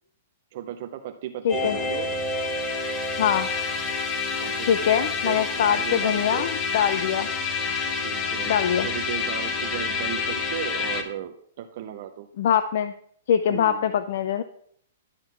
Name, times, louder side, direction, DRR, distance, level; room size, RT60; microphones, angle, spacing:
voice 1, 0.5-2.1 4.4-6.5 8.0-12.3 13.5-13.9, right 10 dB, 50° right, 5 dB, 0.6 m, -36 dB
voice 2, 1.4-1.8 3.2-3.5 4.6-7.3 8.5-8.9 12.4-12.9 13.3-14.4, left 9 dB, 60° left, 12 dB, 0.4 m, -23 dB
sound 1, 1.5-11.0, left 4 dB, 25° left, 0.9 m, -28 dB
11.0 x 3.7 x 5.8 m, 0.66 s
hypercardioid pair, 155°, 0 cm